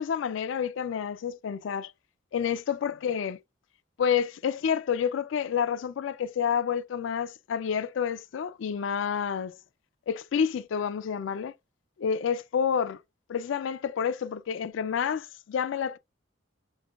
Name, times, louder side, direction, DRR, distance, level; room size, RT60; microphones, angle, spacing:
voice 1, 0.0-1.9 2.3-3.4 4.0-9.6 10.1-11.5 12.0-13.0 13.3-16.0, left 7 dB, 80° left, 0.4 m, -29 dB
6.2 x 2.2 x 2.3 m
head